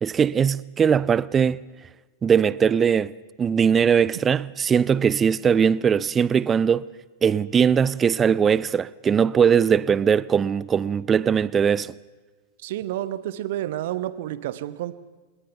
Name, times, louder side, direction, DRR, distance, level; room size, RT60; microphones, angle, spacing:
voice 1, 0.0-1.6 2.2-3.1 3.4-6.9 7.2-11.9, right 7 dB, 20° right, 0.6 m, -20 dB
voice 2, 12.6-14.9, right 13 dB, 55° right, 1.1 m, -30 dB
26.5 x 21.5 x 5.7 m
figure-of-eight pair, 90°, 0 cm